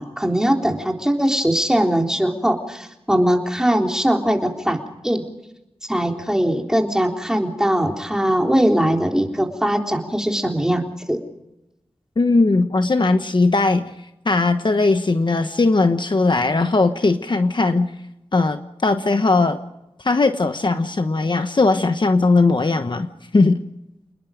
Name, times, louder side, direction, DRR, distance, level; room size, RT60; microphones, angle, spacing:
voice 1, 0.0-5.2 5.8-11.2, equal, 5° right, 2 dB, 3.8 m, -21 dB
voice 2, 12.2-13.9 14.2-17.9 18.3-19.6 20.0-23.1 23.3-23.6, left 3 dB, 50° left, 8 dB, 1.2 m, -18 dB
28.5 x 20.5 x 5.1 m, 0.89 s
wide cardioid pair, 75°, 10 cm